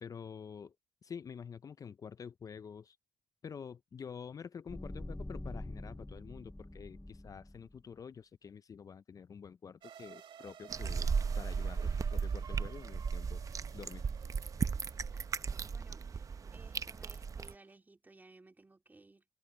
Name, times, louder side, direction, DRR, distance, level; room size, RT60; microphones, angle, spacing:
voice 1, 0.0-0.7 1.0-3.0 3.4-11.1 11.4-13.4 13.7-14.1, left 6 dB, 40° left, 0.5 m, -48 dB
sound 1, 4.7-7.8, left 1 dB, 10° left, 0.9 m, -45 dB
sound 2, 9.8-17.7, right 9 dB, 65° right, 2.0 m, -57 dB
sound 3, 10.7-17.5, right 5 dB, 35° right, 0.7 m, -36 dB
voice 2, 15.1-19.2, right 2 dB, 20° right, 2.5 m, -60 dB
supercardioid pair, 70°, 9 cm